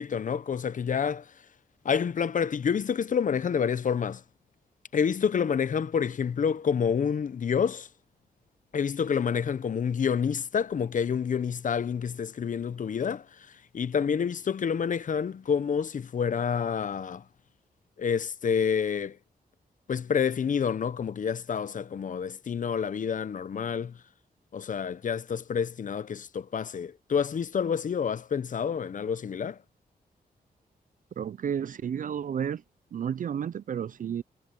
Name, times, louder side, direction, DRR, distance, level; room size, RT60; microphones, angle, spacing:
voice 1, 0.0-1.3 1.8-4.2 4.9-7.9 8.7-17.2 18.0-19.2 19.9-24.0 24.5-29.6, left 7 dB, 55° left, 0.8 m, -28 dB
voice 2, 31.2-32.6 32.9-34.2, right 8 dB, 55° right, 0.4 m, -31 dB
cardioid pair, 90°, 16 cm